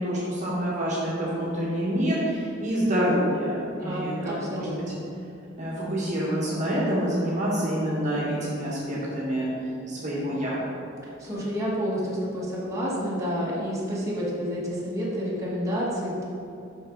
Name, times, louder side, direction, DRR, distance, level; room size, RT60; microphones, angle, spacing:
voice 1, 0.0-4.7 5.6-9.5 9.9-10.6, equal, 35° right, -7 dB, 1.5 m, -27 dB
voice 2, 3.8-5.0 11.2-16.2, equal, 15° right, -8 dB, 1.7 m, -29 dB
7.8 x 6.0 x 3.9 m, 2.8 s
head